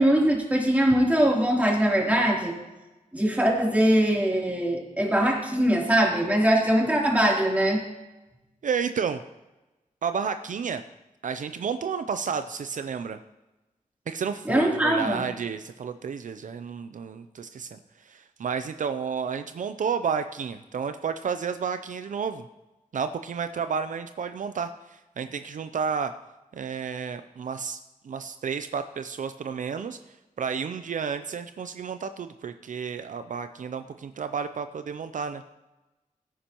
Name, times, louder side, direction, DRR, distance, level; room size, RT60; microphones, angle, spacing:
voice 1, 0.0-2.5 3.1-7.8 14.4-15.2, right 1 dB, 10° right, -3 dB, 3.2 m, -22 dB
voice 2, 8.6-9.2 10.0-10.8 11.2-13.2 14.1-22.4 22.9-26.1 26.5-27.8 28.0-30.0 30.4-35.4, right 6 dB, 70° right, 9 dB, 0.5 m, -31 dB
17.5 x 9.8 x 3.0 m, 1.1 s
wide cardioid pair, 100°, 14 cm